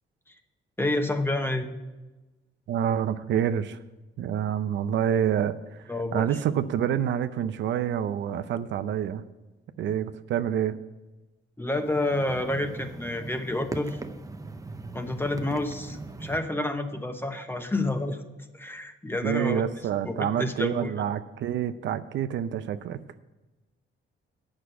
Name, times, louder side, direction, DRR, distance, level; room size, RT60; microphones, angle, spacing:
voice 1, 0.8-1.7 5.9-6.3 11.6-14.0 14.9-18.2 18.5-19.7 20.0-21.0, left 2 dB, 10° left, 7 dB, 1.0 m, -29 dB
voice 2, 2.7-3.8 4.2-5.5 6.1-9.2 9.8-10.8 19.2-23.0, right 9 dB, 70° right, 11 dB, 0.5 m, -27 dB
sound 1, 11.7-16.4, right 3 dB, 15° right, 0.7 m, -40 dB
8.2 x 6.3 x 8.0 m, 1.1 s
cardioid pair, 90°, 20 cm